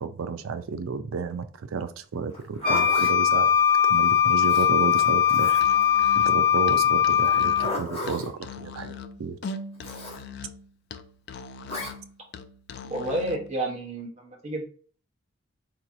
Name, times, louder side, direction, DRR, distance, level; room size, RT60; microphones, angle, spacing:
voice 1, 0.0-3.5 3.9-5.6 6.2-8.9 9.2-9.4, right 5 dB, 90° right, 0.4 m, -32 dB
Zipper (clothing), 2.3-3.1 4.4-5.8 7.3-8.3 9.8-10.2 11.7-11.9, left 1 dB, 30° left, 1.3 m, -34 dB
Wind instrument woodwind instrument, 2.6-7.8, left 9 dB, 50° right, 1.3 m, -20 dB
Musical instrument, 5.5-13.5, left 4 dB, 55° left, 0.3 m, -40 dB
voice 2, 12.9-14.6, right 1 dB, 35° right, 1.0 m, -30 dB
3.9 x 2.9 x 2.5 m
head